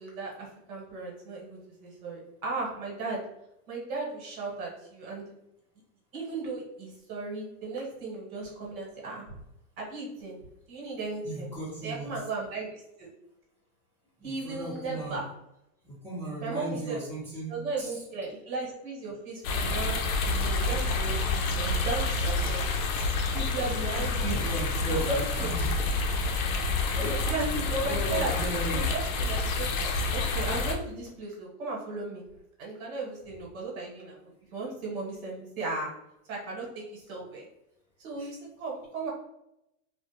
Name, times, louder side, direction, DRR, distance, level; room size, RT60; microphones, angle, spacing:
voice 1, 0.0-3.2 3.7-5.3 6.1-9.4 9.8-10.4 10.7-11.5 11.8-13.1 14.2-15.2 16.4-17.0 17.5-20.0 20.2-22.6 23.3-24.5 24.9-25.5 27.1-28.3 28.7-29.7 30.1-32.2 32.6-35.9 36.3-37.4 38.0-39.1, right 3 dB, 65° right, -3 dB, 1.2 m, -36 dB
voice 2, 11.2-12.1 14.2-15.2 15.8-18.0 22.5-22.7 23.7-25.7 26.9-27.2 27.8-28.9 38.2-38.3, right 1 dB, 5° left, -10 dB, 0.6 m, -37 dB
sound 1, 19.4-30.8, left 3 dB, 65° left, 0.6 m, -28 dB
2.4 x 2.1 x 2.7 m, 0.84 s
hypercardioid pair, 135°, 45 cm